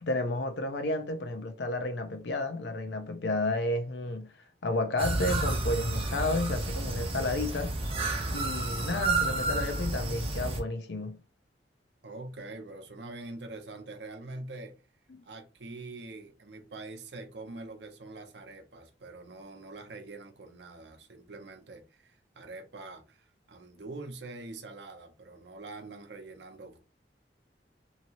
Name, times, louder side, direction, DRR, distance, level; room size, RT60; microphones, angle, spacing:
voice 1, 0.0-4.3 4.6-7.7 8.3-11.2 15.1-15.2, left 2 dB, 75° left, 0.6 m, -31 dB
sound 1, 5.0-10.6, right 2 dB, 30° right, 0.7 m, -31 dB
voice 2, 12.0-14.7 15.2-26.8, right 2 dB, 75° right, 0.7 m, -44 dB
2.8 x 2.7 x 2.9 m
head